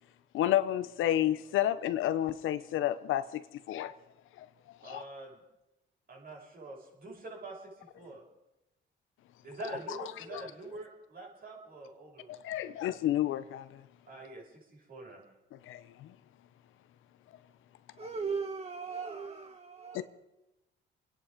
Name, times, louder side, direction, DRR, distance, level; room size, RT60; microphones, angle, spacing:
voice 1, 0.3-3.9 4.4-4.5 4.8-5.0 9.9-10.5 12.3-13.8 15.6-16.1 19.9-20.0, left 12 dB, 85° left, 0.9 m, -31 dB
voice 2, 4.8-5.4 6.1-8.2 9.4-12.4 14.1-15.2, right 2 dB, 50° right, 6.7 m, -45 dB
voice 3, 18.0-20.0, right 5 dB, 30° right, 1.4 m, -37 dB
27.0 x 10.5 x 5.2 m
cardioid pair, 90°, 20 cm